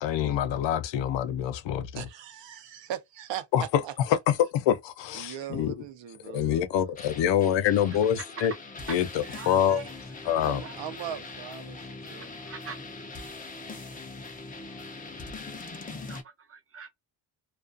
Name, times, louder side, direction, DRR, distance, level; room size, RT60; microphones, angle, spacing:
voice 1, 0.0-2.0 3.5-3.8 4.3-5.7 6.3-8.5 8.9-9.8 10.3-10.6, left 10 dB, 70° left, 0.6 m, -26 dB
voice 2, 1.9-4.2 5.1-6.9 10.4-12.3, right 10 dB, 65° right, 0.7 m, -39 dB
sound 1, 7.0-16.2, left 3 dB, 20° left, 0.4 m, -42 dB
voice 3, 7.8-8.5 8.9-9.0 9.2-9.9 10.2-10.8 12.1-13.1 16.1-16.9, right 5 dB, 30° right, 0.5 m, -44 dB
2.3 x 2.3 x 2.4 m
cardioid pair, 155°, 47 cm